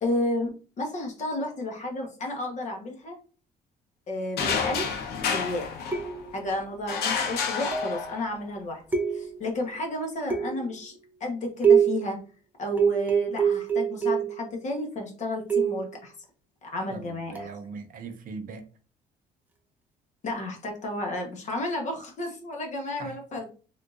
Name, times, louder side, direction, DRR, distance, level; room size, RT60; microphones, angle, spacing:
voice 1, 0.0-3.2 4.1-5.9 6.3-8.8 9.1-12.2 12.6-16.1 16.6-17.5 20.2-23.5, left 1 dB, 45° left, 1 dB, 1.1 m, -32 dB
sound 1, 4.4-6.4 6.9-8.4, left 6 dB, 70° left, 0.7 m, -29 dB
sound 2, 5.9-6.5 7.7-8.1 8.9-9.5 10.3-10.8 11.6-12.1 12.8-14.4 15.5-15.9 17.3-17.6, right 7 dB, 10° right, 0.6 m, -24 dB
voice 2, 16.9-18.6 23.0-23.2, right 5 dB, 55° right, 7 dB, 0.6 m, -40 dB
3.6 x 2.5 x 2.5 m, 0.38 s
cardioid pair, 110°, 17 cm